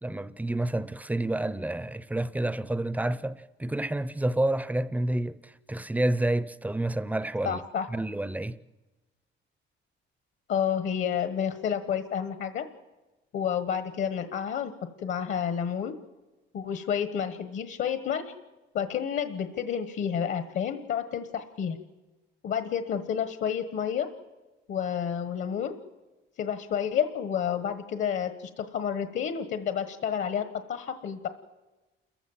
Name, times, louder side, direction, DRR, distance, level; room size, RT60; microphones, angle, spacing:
voice 1, 0.0-7.6 7.9-8.6, right 1 dB, 5° right, 0.6 m, -29 dB
voice 2, 7.4-7.8 10.5-12.6 13.3-14.7 15.0-15.9 16.5-18.3 18.7-21.8 22.4-24.1 24.7-25.7 26.4-31.3, left 8 dB, 60° left, 1.4 m, -30 dB
29.0 x 15.0 x 7.3 m
cardioid pair, 150°, 21 cm